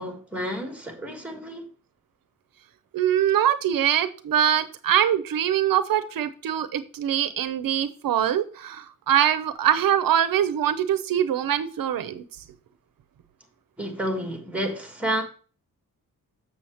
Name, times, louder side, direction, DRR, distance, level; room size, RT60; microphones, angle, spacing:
voice 1, 0.0-1.7 13.8-15.2, equal, 5° right, 1.4 m, -30 dB
voice 2, 2.9-12.2, right 10 dB, 85° right, 0.7 m, -23 dB
7.1 x 6.9 x 2.9 m
wide cardioid pair, 175°, 33 cm